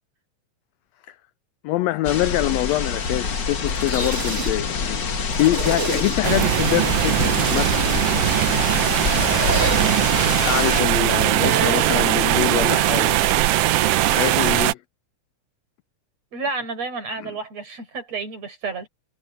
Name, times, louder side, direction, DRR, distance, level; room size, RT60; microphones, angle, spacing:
voice 1, 1.6-5.1 5.4-7.8 10.4-13.2 14.0-14.8 17.2-17.3, left 16 dB, 85° left, 1.5 m, -24 dB
sound 1, 2.0-10.8, left 5 dB, 40° left, 2.0 m, -26 dB
sound 2, 3.5-4.8 5.1-6.4 6.9-8.0 8.8-10.0 10.5-11.0, right 4 dB, 30° right, 1.8 m, -30 dB
sound 3, 6.2-14.7, right 14 dB, 80° right, 1.4 m, -20 dB
voice 2, 11.4-12.2 16.3-18.9, right 5 dB, 55° right, 6.0 m, -30 dB
omnidirectional pair, 3.5 m